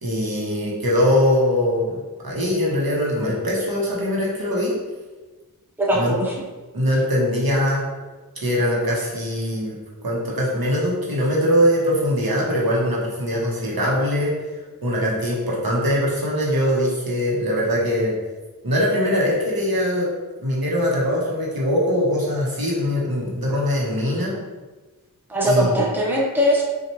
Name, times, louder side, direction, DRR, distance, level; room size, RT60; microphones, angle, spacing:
voice 1, 0.0-4.7 5.9-6.1 6.7-7.8 8.4-9.7 10.0-14.3 14.8-18.1 18.6-20.1 20.4-24.3 25.4-25.8, equal, 70° right, -4 dB, 1.0 m, -22 dB
voice 2, 5.8-6.3 25.3-26.6, equal, 5° right, -4 dB, 0.7 m, -20 dB
4.3 x 2.5 x 2.9 m, 1.3 s
wide cardioid pair, 45°, 37 cm